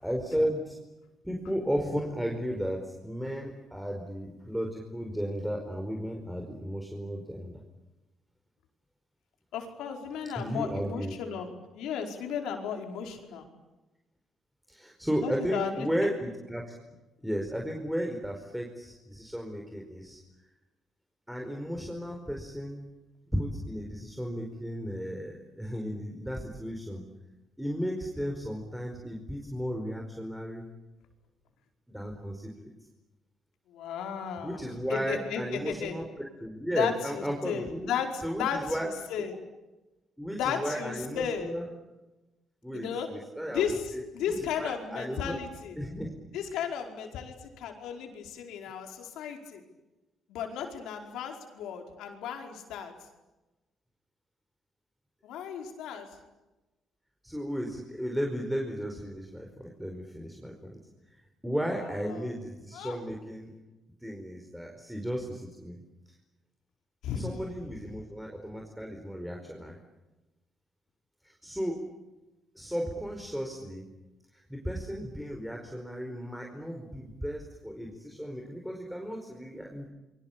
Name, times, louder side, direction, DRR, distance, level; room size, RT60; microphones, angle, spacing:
voice 1, 0.0-0.8 1.2-7.6 10.3-11.1 14.7-16.7 17.2-20.2 21.3-22.8 23.3-27.0 27.6-30.7 31.9-32.7 34.4-37.9 38.2-38.9 40.2-41.6 42.6-44.0 44.3-45.4 45.8-46.1 57.2-60.8 61.4-63.5 64.0-65.8 67.1-69.8 71.2-71.8 72.5-73.8 74.5-79.9, equal, ahead, 2 dB, 4.8 m, -34 dB
voice 2, 9.5-13.5 15.2-16.1 33.7-36.0 36.7-39.3 40.3-41.5 42.7-43.1 43.5-45.8 46.3-49.6 50.3-52.9 55.2-56.1 61.7-62.3 62.7-63.0 67.0-67.5, left 7 dB, 90° left, 4 dB, 4.9 m, -35 dB
28.0 x 24.0 x 8.6 m, 1.1 s
cardioid pair, 90°, 0 cm